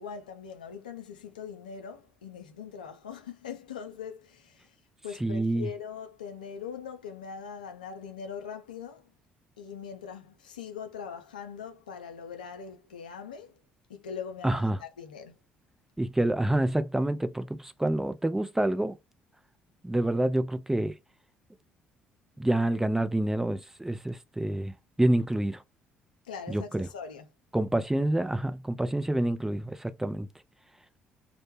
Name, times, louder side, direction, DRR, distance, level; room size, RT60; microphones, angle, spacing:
voice 1, 0.0-4.7 5.0-9.1 9.6-13.5 13.9-15.3 26.3-27.3, left 7 dB, 90° left, 0.4 m, -41 dB
voice 2, 5.2-5.7 14.4-14.8 16.0-19.0 19.8-20.9 22.4-25.6 26.5-26.9 27.5-30.3, right 1 dB, 10° right, 0.4 m, -27 dB
2.1 x 2.1 x 3.0 m
hypercardioid pair, 55°, 4 cm